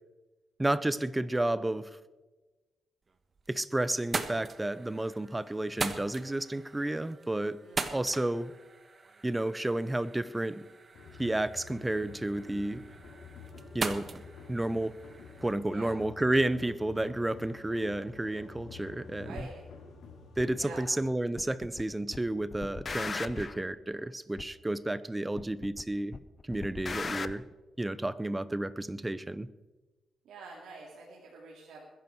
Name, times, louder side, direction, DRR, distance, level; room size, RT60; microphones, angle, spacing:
voice 1, 0.6-1.9 3.5-7.6 7.9-8.5 9.2-10.7 11.2-12.8 13.7-14.2 14.5-15.0 15.4-19.4 20.4-26.2 26.5-27.5 27.8-29.5, right 1 dB, 15° right, 0.7 m, -31 dB
sound 1, 3.1-3.6 3.9-15.5, right 4 dB, 35° right, 1.3 m, -41 dB
voice 2, 7.6-8.1 15.7-15.9 19.2-19.6 20.6-20.9 30.2-31.8, right 3 dB, 85° right, 2.6 m, -47 dB
sound 2, 10.9-20.9, left 4 dB, 80° left, 2.9 m, -50 dB
sound 3, 19.4-19.5 20.4-20.5 21.4-21.8 22.1-23.6 24.4-24.5 25.4-25.8 26.1-27.3, left 4 dB, 40° left, 0.7 m, -38 dB
21.0 x 10.5 x 4.6 m
cardioid pair, 90°, 0 cm